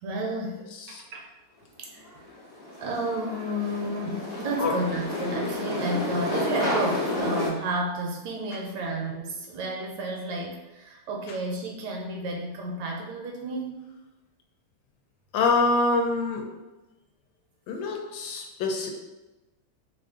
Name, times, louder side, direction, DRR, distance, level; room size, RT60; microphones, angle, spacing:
voice 1, 0.0-1.3 1.8-2.3 2.7-13.8, right 1 dB, 75° right, 0 dB, 1.1 m, -32 dB
sound 1, 2.0-7.5, left 2 dB, 60° left, 0.6 m, -30 dB
voice 2, 15.3-16.5 17.7-18.9, left 3 dB, 75° left, 1 dB, 1.2 m, -25 dB
3.2 x 2.5 x 3.5 m, 1.1 s
omnidirectional pair, 2.1 m